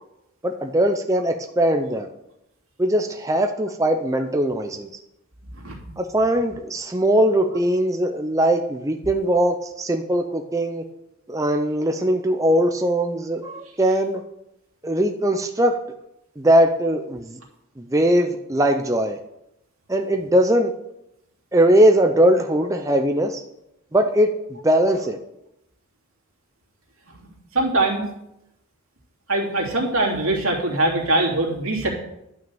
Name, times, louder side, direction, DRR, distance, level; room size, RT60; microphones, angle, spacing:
voice 1, 0.4-2.1 2.8-4.9 6.0-10.8 11.3-14.2 14.8-15.8 16.4-17.4 17.8-19.2 19.9-20.7 21.5-23.4 23.9-25.2, right 1 dB, 15° right, 4 dB, 0.5 m, -20 dB
voice 2, 5.6-5.9 27.1-27.3 27.5-28.0 29.3-31.9, right 2 dB, 75° right, -1 dB, 3.1 m, -22 dB
11.5 x 6.3 x 7.0 m, 0.85 s
head